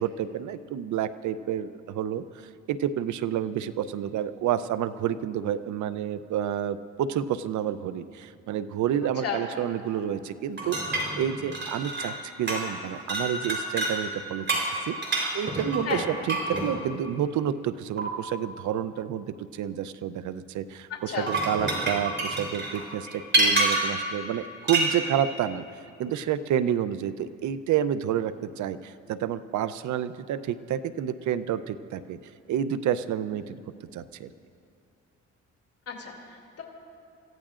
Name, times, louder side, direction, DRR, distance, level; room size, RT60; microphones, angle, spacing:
voice 1, 0.0-2.2 2.7-14.5 14.8-25.6 26.0-32.2 32.5-33.6 33.9-34.3, right 10 dB, 70° right, 13 dB, 0.6 m, -29 dB
sound 1, 10.6-12.2 12.5-12.8 13.1-14.0 14.5-16.7 18.0-18.1 21.1-24.0 24.7-24.9, right 2 dB, 40° right, 3.9 m, -27 dB
voice 2, 21.1-21.4 35.9-36.6, left 7 dB, 50° left, -1 dB, 2.9 m, -33 dB
28.0 x 15.5 x 2.5 m, 2.6 s
cardioid pair, 90°, 30 cm